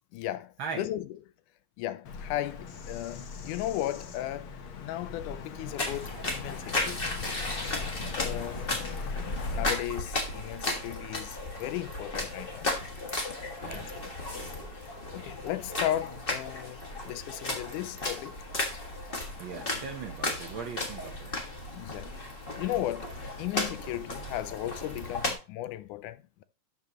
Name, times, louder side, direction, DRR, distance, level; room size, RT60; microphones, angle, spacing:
voice 1, 0.1-1.2 1.8-7.0 8.1-12.7 13.6-14.0 15.1-18.4 21.7-22.1 22.6-26.4, left 13 dB, 85° left, 2.1 m, -36 dB
Bird vocalization bird call bird song, 2.1-9.7, left 5 dB, 60° left, 1.4 m, -40 dB
sound 1, 5.8-25.3, left 2 dB, 35° left, 0.9 m, -35 dB
voice 2, 13.6-14.0 19.4-21.3, right 6 dB, 80° right, 1.1 m, -39 dB
11.5 x 7.1 x 3.0 m
omnidirectional pair, 3.5 m